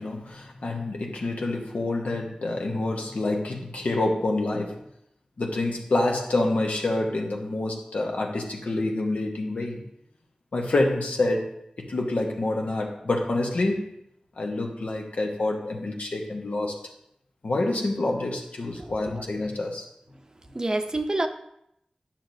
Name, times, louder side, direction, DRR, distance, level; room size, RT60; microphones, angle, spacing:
voice 1, 0.0-4.8 5.4-9.8 10.5-13.8 14.4-16.7 17.4-19.9, left 2 dB, 85° left, 1 dB, 1.0 m, -27 dB
voice 2, 18.8-19.2 20.5-21.3, right 2 dB, 30° right, 7 dB, 0.6 m, -28 dB
10.0 x 6.0 x 2.7 m, 0.76 s
wide cardioid pair, 70°, 2 cm